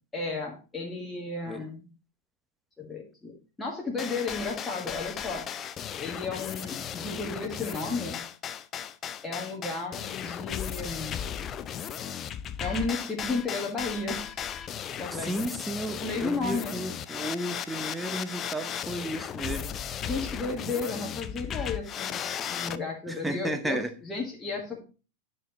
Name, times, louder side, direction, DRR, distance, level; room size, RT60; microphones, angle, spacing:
voice 1, 0.1-1.8 2.8-5.5 6.0-8.2 9.2-11.2 12.6-14.4 15.0-15.4 16.0-16.7 20.0-24.8, left 3 dB, 10° left, -1 dB, 1.6 m, -33 dB
sound 1, 4.0-22.8, left 9 dB, 30° left, 0.5 m, -36 dB
voice 2, 15.1-19.7 23.1-23.9, right 1 dB, 5° right, 8 dB, 0.9 m, -33 dB
10.5 x 5.4 x 2.9 m, 0.34 s
figure-of-eight pair, 90°, 0 cm